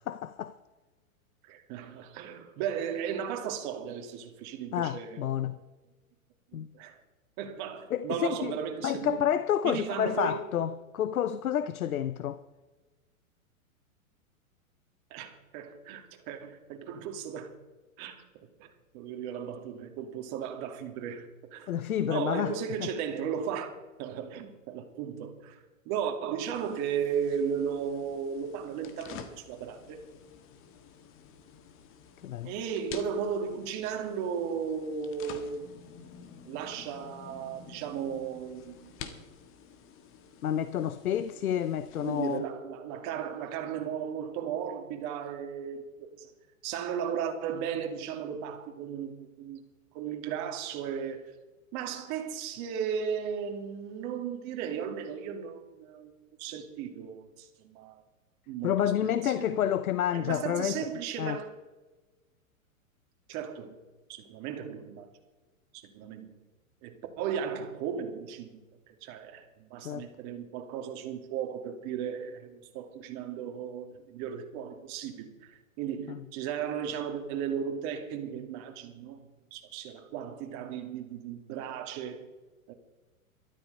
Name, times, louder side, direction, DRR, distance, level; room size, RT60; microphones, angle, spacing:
voice 1, 0.1-0.5 4.7-5.6 6.5-6.7 7.9-8.6 8.8-12.4 21.7-22.9 32.2-32.5 40.4-42.4 58.6-60.9 61.2-61.4 69.8-70.1 76.1-76.2, left 10 dB, 80° left, 0.7 m, -29 dB
voice 2, 1.5-5.2 6.7-7.0 7.4-9.2 9.6-10.4 15.1-17.5 18.0-18.3 18.6-18.7 18.9-21.8 22.1-25.6 25.9-30.0 32.4-35.7 36.5-39.0 42.0-46.3 46.6-49.6 49.9-51.3 51.7-58.0 58.5-59.6 60.1-61.5 63.3-63.8 64.1-65.1 65.7-66.3 66.8-68.6 69.0-69.4 69.7-79.2 79.5-82.3 82.7-82.8, right 7 dB, 40° right, 2.5 m, -35 dB
sound 1, 26.5-42.4, left 7 dB, 30° left, 1.6 m, -50 dB
13.0 x 12.5 x 5.4 m
hypercardioid pair, 120°, 42 cm